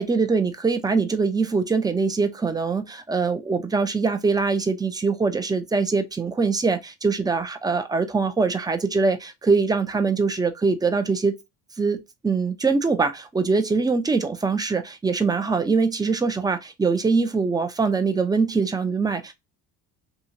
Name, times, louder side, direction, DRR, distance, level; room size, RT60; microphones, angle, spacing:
voice 1, 0.0-11.3 11.8-19.3, right 4 dB, 10° right, 0.4 m, -23 dB
2.8 x 2.7 x 2.6 m
supercardioid pair, 85°, 44 cm